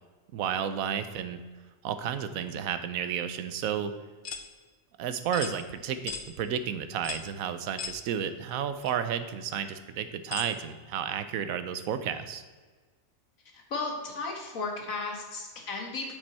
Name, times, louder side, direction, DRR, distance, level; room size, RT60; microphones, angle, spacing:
voice 1, 0.3-1.4 1.8-3.9 5.0-12.4, right 8 dB, 85° right, 10 dB, 1.1 m, -32 dB
sound 1, 4.2-4.5 5.3-5.6 6.1-6.3 7.0-7.3 7.8-8.0 8.8-8.9 10.3-10.5, left 6 dB, 50° left, 0.8 m, -37 dB
voice 2, 13.7-16.1, left 3 dB, 80° left, 1 dB, 1.9 m, -34 dB
8.1 x 6.8 x 4.2 m, 1.4 s
omnidirectional pair, 1.4 m